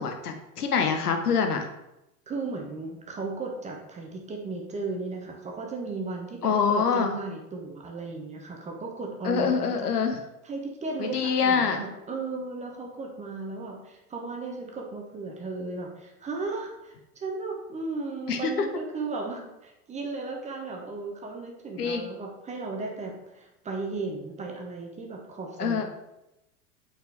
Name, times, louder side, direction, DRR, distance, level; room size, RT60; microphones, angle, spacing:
voice 1, 0.0-1.7 6.4-7.1 9.2-10.2 11.0-11.8 18.3-18.7 21.8-22.1 25.6-25.8, left 6 dB, 70° left, 5 dB, 1.1 m, -25 dB
voice 2, 2.3-9.9 10.4-25.8, right 3 dB, 15° right, 1 dB, 0.9 m, -35 dB
7.9 x 4.5 x 3.3 m, 0.90 s
figure-of-eight pair, 90°, 48 cm